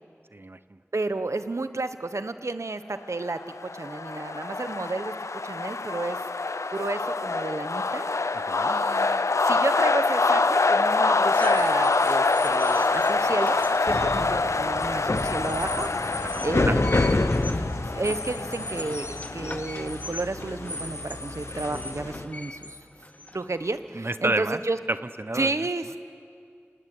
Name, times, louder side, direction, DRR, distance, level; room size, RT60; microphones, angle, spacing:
voice 1, 0.3-0.8 8.3-8.8 16.1-16.8 23.9-24.6 24.9-25.5, right 2 dB, 50° right, 12 dB, 0.9 m, -30 dB
voice 2, 0.9-3.4 3.7-5.1 5.4-8.1 8.6-16.8 17.9-22.8 23.3-24.8 25.3-26.0, right 2 dB, 80° right, 10 dB, 1.2 m, -31 dB
sound 1, 3.3-20.0, left 3 dB, 85° left, 0.6 m, -25 dB
sound 2, 11.2-24.0, left 1 dB, 30° left, 1.0 m, -40 dB
sound 3, 13.9-22.2, left 2 dB, 70° left, 1.1 m, -29 dB
28.0 x 18.5 x 9.3 m, 2.3 s
wide cardioid pair, 40°, 5 cm